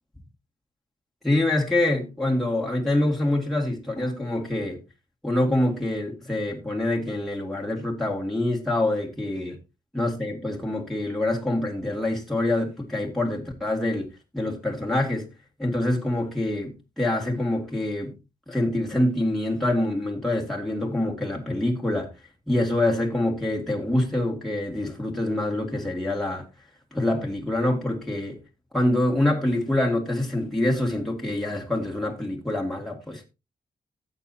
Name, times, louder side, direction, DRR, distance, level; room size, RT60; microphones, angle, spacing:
voice 1, 1.2-4.8 5.2-9.6 9.9-15.3 15.6-18.1 18.5-22.1 22.5-26.5 26.9-28.4 28.7-33.2, left 1 dB, ahead, 2.3 m, -25 dB
15.5 x 8.0 x 2.8 m
wide cardioid pair, 105°, 16 cm